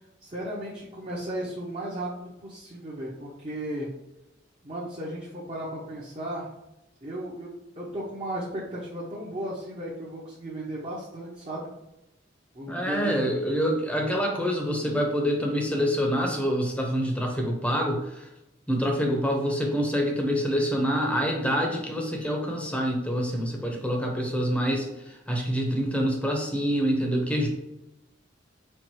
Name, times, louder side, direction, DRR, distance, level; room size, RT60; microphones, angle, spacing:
voice 1, 0.2-3.9 4.6-6.5 7.0-11.7 12.5-13.2, right 1 dB, 30° right, -6 dB, 0.8 m, -35 dB
voice 2, 12.7-18.3 18.7-27.5, equal, 5° left, 1 dB, 0.8 m, -26 dB
4.4 x 2.5 x 4.5 m, 0.93 s
head